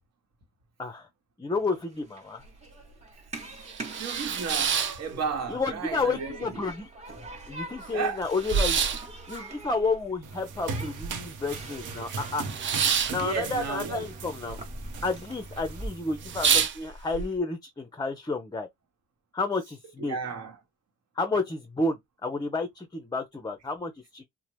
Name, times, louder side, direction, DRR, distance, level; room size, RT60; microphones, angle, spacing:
voice 1, 1.4-2.4 5.5-6.9 7.5-8.8 9.3-12.5 13.1-14.6 15.0-18.7 19.3-20.2 21.2-24.2, left 3 dB, 15° left, 0.5 m, -31 dB
Human group actions, 1.6-15.9, right 1 dB, 20° right, 1.0 m, -45 dB
sound 1, 2.4-2.5 2.9-3.0 3.5-5.7 6.0-6.7 7.1-7.2 7.4-11.5 11.8-14.6 14.8-15.4 15.8-15.9 16.2-17.3, right 7 dB, 40° right, 0.5 m, -28 dB
voice 2, 3.4-6.6 7.9-8.3 13.2-14.1 20.0-20.6, right 5 dB, 60° right, 1.1 m, -34 dB
sound 2, 10.2-16.7, right 4 dB, 80° right, 0.7 m, -39 dB
2.8 x 2.0 x 3.1 m
cardioid pair, 90°, 30 cm